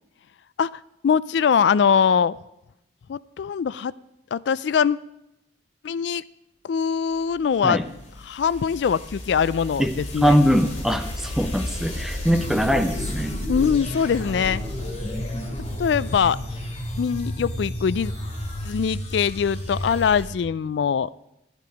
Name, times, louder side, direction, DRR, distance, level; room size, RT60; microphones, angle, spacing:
voice 1, 0.6-2.4 3.1-3.9 4.3-5.0 5.8-6.2 6.6-7.8 8.3-10.4 13.5-14.6 15.8-16.4 17.0-18.1 18.6-21.1, left 7 dB, 70° left, 19 dB, 0.3 m, -22 dB
sound 1, 7.4-20.3, left 1 dB, 40° left, 2.6 m, -32 dB
voice 2, 10.2-13.4 15.0-15.5, equal, ahead, 7 dB, 0.8 m, -22 dB
12.5 x 11.5 x 5.1 m, 0.87 s
head